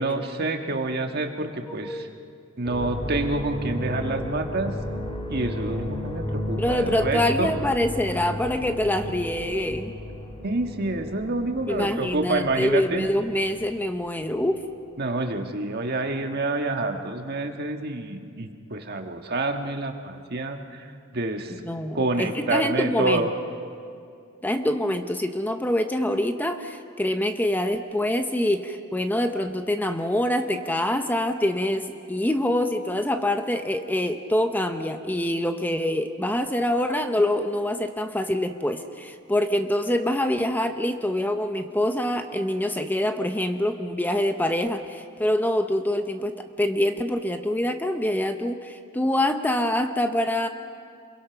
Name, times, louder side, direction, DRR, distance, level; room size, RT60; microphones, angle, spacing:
voice 1, 0.0-2.1 2.6-4.7 5.3-7.5 10.4-13.0 15.0-21.6 21.9-23.3, right 2 dB, 50° right, 5 dB, 1.5 m, -28 dB
sound 1, 2.6-14.8 15.0-15.5, left 1 dB, 25° left, 1.8 m, -34 dB
voice 2, 6.6-9.9 11.7-14.6 21.6-23.3 24.4-50.5, left 1 dB, 10° left, 7 dB, 0.7 m, -25 dB
27.5 x 22.0 x 5.9 m, 2.4 s
head